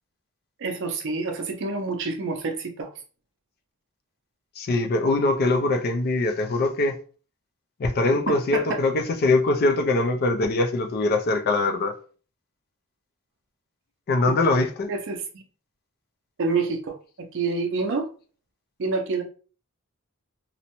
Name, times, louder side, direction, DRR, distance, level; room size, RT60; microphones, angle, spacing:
voice 1, 0.6-2.9 8.3-8.8 14.3-14.4 14.9-15.4 16.4-18.1 18.8-19.2, right 4 dB, 55° right, 0.5 m, -28 dB
voice 2, 4.6-6.9 7.8-11.9 14.1-14.9, left 2 dB, 45° left, 0.4 m, -22 dB
2.6 x 2.1 x 2.9 m
head